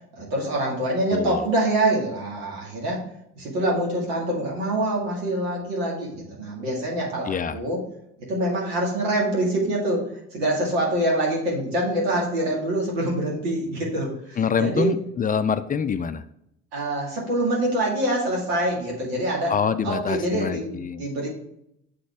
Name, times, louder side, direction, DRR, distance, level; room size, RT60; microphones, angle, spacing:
voice 1, 0.1-3.0 3.4-7.8 8.3-14.9 16.7-19.5 19.8-21.3, right 1 dB, 90° right, -2 dB, 2.0 m, -25 dB
voice 2, 1.1-1.4 7.3-7.6 14.4-16.2 19.5-21.0, left 6 dB, 30° left, 12 dB, 0.4 m, -25 dB
7.6 x 4.1 x 3.4 m, 0.78 s
hypercardioid pair, 65°, 30 cm